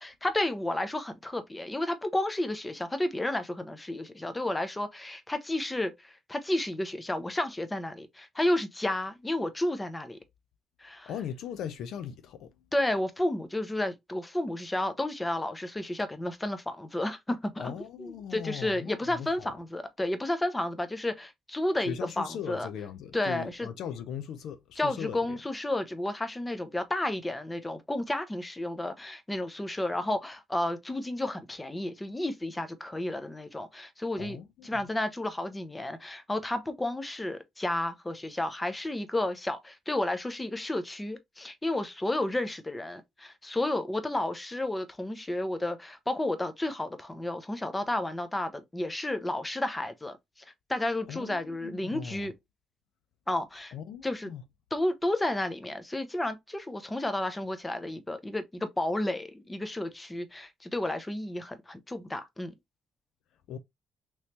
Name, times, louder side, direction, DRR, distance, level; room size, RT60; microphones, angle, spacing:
voice 1, 0.0-10.2 10.8-11.1 12.7-22.7 23.1-23.7 24.8-34.4 34.6-50.2 50.7-52.3 53.3-53.7 54.0-54.3 54.7-62.5, left 1 dB, 15° left, 0.7 m, -32 dB
voice 2, 11.1-12.5 17.6-19.5 21.9-25.4 34.2-34.7 51.1-52.3 53.7-54.4 63.5-63.6, left 8 dB, 80° left, 0.5 m, -39 dB
3.2 x 3.0 x 2.8 m
cardioid pair, 90°, 0 cm